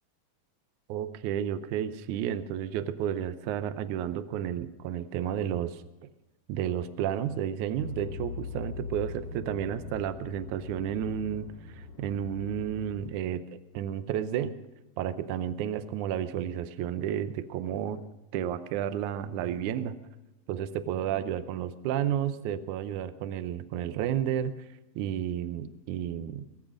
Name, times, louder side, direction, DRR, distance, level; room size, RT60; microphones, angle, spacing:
voice 1, 0.9-5.8 6.5-13.4 13.7-14.6 15.0-18.0 18.3-20.0 20.5-24.7 25.0-26.5, right 10 dB, 75° right, 12 dB, 1.9 m, -32 dB
sound 1, 7.8-13.1, left 5 dB, 50° left, 2.5 m, -41 dB
21.0 x 7.9 x 6.3 m, 1.0 s
omnidirectional pair, 4.0 m